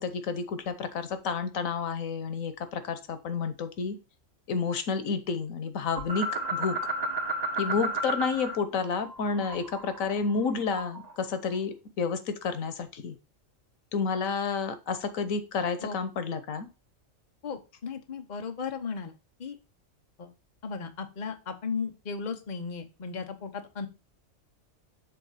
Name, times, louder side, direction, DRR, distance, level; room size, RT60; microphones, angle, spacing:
voice 1, 0.0-4.0 4.5-6.8 7.6-13.1 13.9-16.7, left 5 dB, 90° left, 11 dB, 1.3 m, -30 dB
sound 1, 6.0-8.6 8.8-11.1, right 2 dB, 30° right, 1.3 m, -33 dB
voice 2, 17.4-19.1 19.4-19.6 20.2-20.3 20.6-23.9, left 5 dB, 40° left, 6 dB, 1.0 m, -35 dB
7.4 x 3.6 x 5.7 m, 0.30 s
omnidirectional pair, 1.4 m